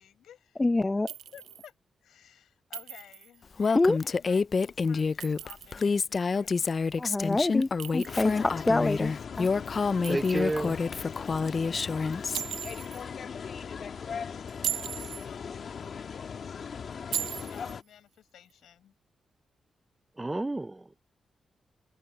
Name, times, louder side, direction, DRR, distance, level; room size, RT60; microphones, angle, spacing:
voice 1, 0.0-0.6 1.0-1.7 2.0-6.7 10.1-10.4 14.2-16.4 17.3-18.9, left 10 dB, 90° left, 7.3 m, -54 dB
voice 2, 0.6-1.1 3.7-4.0 7.0-9.5, left 2 dB, 25° left, 0.7 m, -26 dB
Chink clink, 1.1-1.7 2.7-3.4 5.0-5.9 7.8-8.7 10.0-10.8 12.3-13.0 14.5-15.3 17.1-17.8, right 10 dB, 90° right, 0.7 m, -37 dB
Female speech woman speaking, 3.6-12.4, left 4 dB, 45° left, 0.4 m, -28 dB
sound 1, 8.1-17.8, left 6 dB, 65° left, 1.9 m, -39 dB
voice 3, 10.1-10.8 20.2-21.0, right 2 dB, 20° right, 0.5 m, -31 dB
cardioid pair, 75°, 0 cm